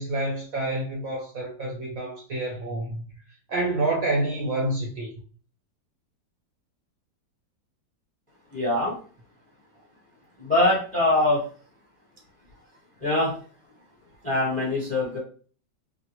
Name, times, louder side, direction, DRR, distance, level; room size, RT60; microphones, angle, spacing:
voice 1, 0.0-3.0 3.5-5.1, right 2 dB, 60° right, 0.9 m, -28 dB
voice 2, 8.5-8.9 10.4-11.4 13.0-13.3 14.2-15.2, left 1 dB, 5° left, 0.8 m, -23 dB
3.9 x 2.1 x 2.9 m
omnidirectional pair, 2.0 m